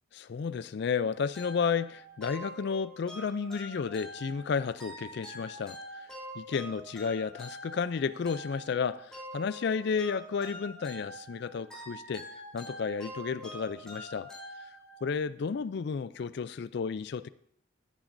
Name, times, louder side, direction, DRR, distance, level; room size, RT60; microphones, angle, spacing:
voice 1, 0.2-6.0 6.4-12.3 12.5-14.3 15.0-17.3, left 5 dB, 55° left, 0.3 m, -32 dB
sound 1, 1.3-15.2, equal, 5° left, 3.4 m, -45 dB
17.0 x 9.0 x 2.6 m
head